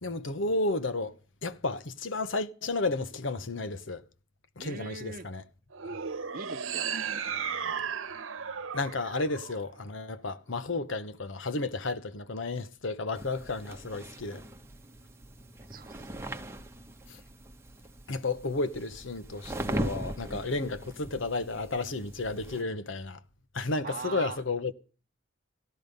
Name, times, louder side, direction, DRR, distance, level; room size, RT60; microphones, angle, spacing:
voice 1, 0.0-1.2 1.4-4.0 4.6-5.4 8.7-14.4 17.1-17.2 18.1-23.2 23.5-24.7, left 3 dB, 70° left, 1.0 m, -32 dB
voice 2, 4.6-5.3 6.3-7.8 15.7-16.1 23.8-24.4, right 4 dB, 45° right, 0.8 m, -42 dB
sound 1, 5.7-10.1, right 7 dB, 80° right, 1.1 m, -35 dB
sound 2, 13.1-22.6, right 1 dB, 15° right, 1.1 m, -40 dB
17.5 x 13.0 x 5.3 m
head